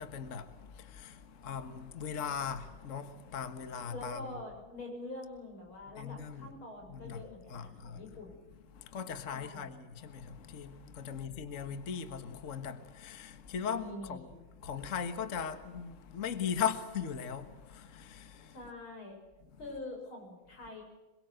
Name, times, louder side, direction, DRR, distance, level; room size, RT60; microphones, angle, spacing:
voice 1, 0.0-4.4 5.9-6.5 6.9-7.2 7.5-8.1 8.7-14.2 14.6-18.7, left 7 dB, 40° left, 1.7 m, -39 dB
voice 2, 3.9-8.4 9.3-9.7 13.7-14.4 18.5-19.2 19.6-20.8, left 2 dB, 80° left, 7.7 m, -45 dB
27.0 x 22.5 x 8.0 m
omnidirectional pair, 2.2 m